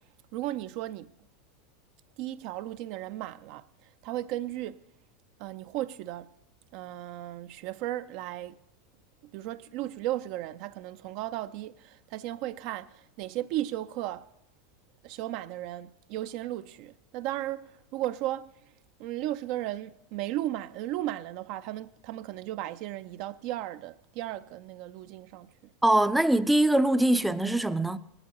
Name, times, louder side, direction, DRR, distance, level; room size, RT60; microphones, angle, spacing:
voice 1, 0.3-1.1 2.2-4.8 5.4-6.3 6.7-8.6 9.3-14.3 15.0-18.5 19.0-25.5, right 14 dB, 55° right, 0.4 m, -35 dB
voice 2, 25.8-28.0, right 1 dB, 5° right, 0.5 m, -23 dB
18.5 x 13.0 x 3.0 m
hypercardioid pair, 95°, 0 cm